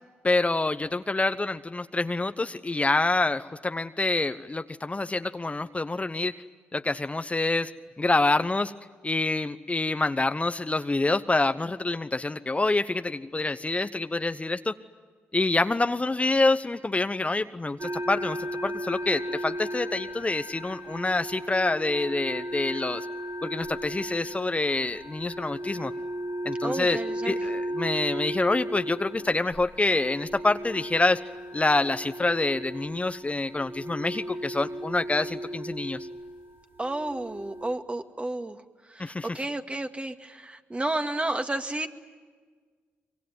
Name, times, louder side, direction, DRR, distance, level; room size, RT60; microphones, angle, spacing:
voice 1, 0.2-6.3 6.7-7.7 8.0-8.7 9.0-14.7 15.3-18.4 18.6-23.1 23.4-25.9 26.4-31.2 31.5-36.0 39.0-39.3, left 2 dB, 25° left, 10 dB, 1.0 m, -26 dB
sound 1, 17.8-37.7, equal, 40° right, 2.5 m, -36 dB
voice 2, 26.6-27.4 36.8-38.6 38.9-41.9, right 2 dB, 25° right, 7 dB, 2.2 m, -31 dB
25.0 x 23.5 x 9.5 m, 1.5 s
hypercardioid pair, 45°, 5 cm